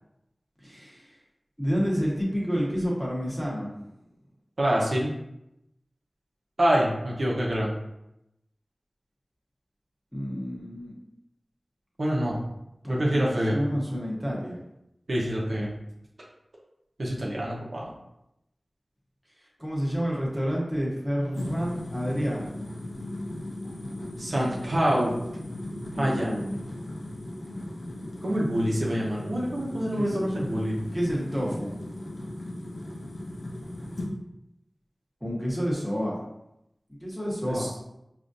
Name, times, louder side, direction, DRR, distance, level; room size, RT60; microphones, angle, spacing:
voice 1, 0.6-1.2 1.6-3.8 10.1-11.0 12.8-14.6 19.6-22.5 25.9-26.6 29.9-30.5 30.9-31.9 35.2-36.2 37.0-37.7, equal, ahead, -4 dB, 1.1 m, -29 dB
voice 2, 4.6-5.1 6.6-7.7 12.0-12.4 12.9-13.6 15.1-15.7 17.0-17.9 24.2-25.1 26.0-26.3 28.2-30.7 37.5-37.7, equal, 65° right, -4 dB, 0.9 m, -26 dB
sound 1, 21.3-34.1, left 1 dB, 85° left, 0.6 m, -37 dB
4.9 x 2.5 x 2.6 m, 0.85 s
wide cardioid pair, 55°, 0 cm